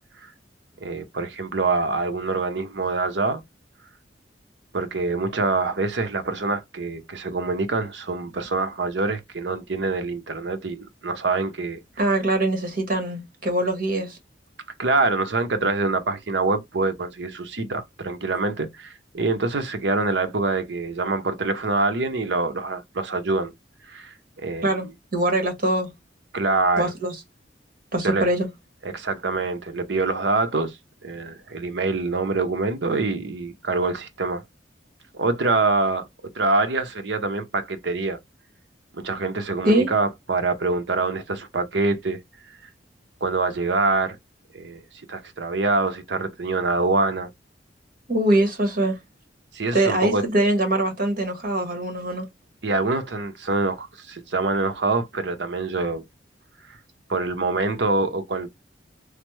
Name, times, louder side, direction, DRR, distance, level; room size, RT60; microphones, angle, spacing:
voice 1, 0.8-3.4 4.7-11.8 14.8-23.5 23.9-24.8 26.3-26.8 28.0-28.3 28.8-30.8 31.0-34.4 35.1-36.0 36.3-38.2 38.9-42.2 43.2-44.2 44.5-44.8 45.1-47.3 49.5-50.2 52.6-56.0 57.1-58.5, right 3 dB, 70° right, 0.7 m, -25 dB
voice 2, 12.0-14.2 24.6-25.9 26.8-27.1 27.9-28.5 39.6-39.9 48.1-49.0 49.7-52.3, right 1 dB, 55° right, 1.5 m, -23 dB
3.2 x 2.1 x 3.0 m
head